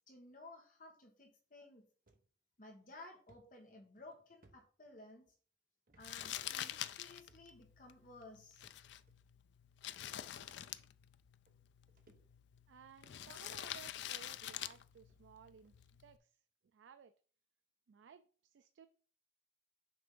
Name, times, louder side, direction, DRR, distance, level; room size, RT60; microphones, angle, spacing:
voice 1, 0.1-1.8 2.6-5.3 6.0-8.7, left 2 dB, 45° left, 2 dB, 1.2 m, -56 dB
sound 1, 2.1-2.3 2.7-2.8 3.3-5.3 5.9-6.1 6.4-6.5 7.3-7.7 8.6-9.2 10.1-10.2 11.1-11.2 11.5-12.7 13.1-13.4 14.1-14.2 14.7-14.8 15.1-15.2 15.6-15.8, right 2 dB, 50° right, 0.9 m, -70 dB
Crumpling crinkling, 6.0-16.2, left 11 dB, 70° left, 0.4 m, -47 dB
voice 2, 12.7-16.4 16.7-17.1 17.9-18.9, right 7 dB, 85° right, 10 dB, 0.4 m, -59 dB
6.0 x 3.4 x 5.3 m, 0.43 s
head